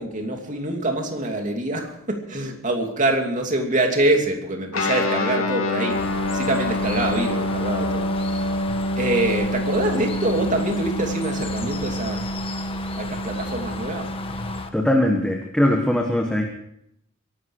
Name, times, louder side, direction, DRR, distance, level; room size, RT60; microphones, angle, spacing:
voice 1, 0.0-12.3 12.9-14.1, right 2 dB, 40° right, 3 dB, 2.8 m, -25 dB
Guitar, 4.7-14.6, left 1 dB, 90° left, 2.2 m, -27 dB
Bird, 5.9-14.7, left 3 dB, 25° left, 1.4 m, -34 dB
voice 2, 14.7-16.5, left 1 dB, 5° left, 1 dB, 1.5 m, -20 dB
23.5 x 12.0 x 4.8 m, 0.76 s
head